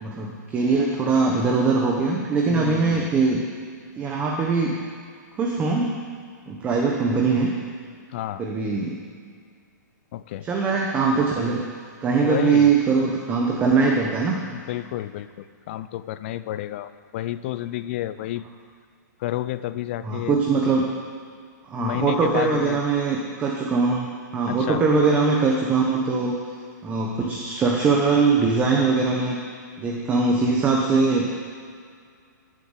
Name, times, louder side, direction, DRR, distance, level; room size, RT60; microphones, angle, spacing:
voice 1, 0.0-3.4 4.0-4.8 5.4-6.0 6.5-7.5 8.4-9.0 10.4-11.6 12.0-14.4 20.0-20.9 21.7-24.1 24.3-26.3 26.8-29.4 29.8-31.3, right 4 dB, 15° right, 0 dB, 1.0 m, -21 dB
voice 2, 2.5-3.1 8.1-8.4 10.1-10.5 12.2-12.7 14.5-18.4 19.2-20.7 21.8-22.8 24.5-24.8, left 14 dB, 40° left, 13 dB, 0.5 m, -30 dB
13.0 x 7.5 x 8.0 m, 2.1 s
hypercardioid pair, 160°, 10 cm